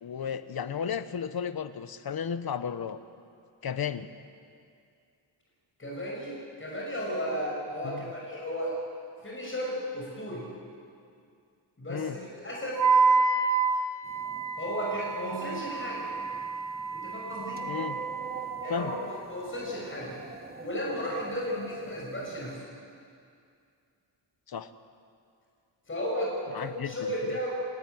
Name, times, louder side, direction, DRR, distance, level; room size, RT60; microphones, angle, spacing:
voice 1, 0.0-3.0 3.6-4.1 7.8-8.1 11.9-12.2 17.7-18.0 18.7-19.0 24.5-24.7 26.5-27.4, left 7 dB, 50° left, 12 dB, 1.1 m, -34 dB
voice 2, 5.8-8.8 9.2-10.4 11.8-12.8 14.6-16.1 16.9-17.6 18.6-20.2 20.6-22.6 25.9-27.5, equal, 25° left, -3 dB, 6.2 m, -34 dB
Wind instrument woodwind instrument, 12.8-18.9, right 4 dB, 40° right, 1.8 m, -28 dB
sound 1, 14.0-22.6, right 3 dB, 20° right, 1.5 m, -46 dB
29.0 x 14.5 x 9.5 m, 2.4 s
wide cardioid pair, 145°, 45 cm